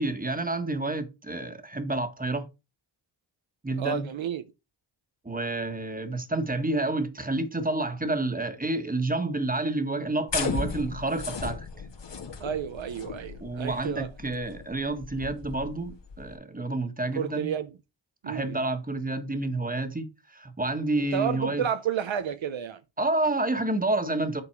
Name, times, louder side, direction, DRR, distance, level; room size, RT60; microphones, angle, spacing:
voice 1, 0.0-2.5 3.6-4.1 5.2-11.7 13.4-17.5 18.2-21.6 23.0-24.4, right 2 dB, 20° right, 1.5 m, -29 dB
voice 2, 3.8-4.4 12.4-14.1 17.1-17.7 18.2-18.6 21.0-22.8, right 8 dB, 70° right, 0.8 m, -31 dB
sound 1, 10.3-16.3, left 5 dB, 60° left, 1.8 m, -36 dB
8.9 x 4.0 x 4.7 m
cardioid pair, 60°, 47 cm